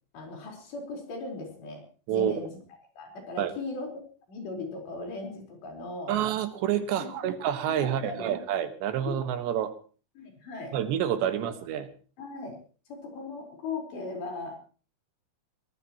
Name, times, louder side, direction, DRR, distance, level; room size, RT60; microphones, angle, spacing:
voice 1, 0.1-1.8 2.1-2.5 3.0-3.9 4.3-6.1 6.9-7.3 7.7-8.4 9.0-9.2 10.2-10.8 12.2-12.6 12.9-14.6, left 3 dB, 75° left, 1 dB, 6.8 m, -38 dB
voice 2, 2.1-2.5 3.4-3.5 6.1-9.7 10.7-11.9, right 10 dB, 90° right, 8 dB, 3.7 m, -28 dB
22.5 x 19.0 x 3.1 m, 0.39 s
omnidirectional pair, 4.9 m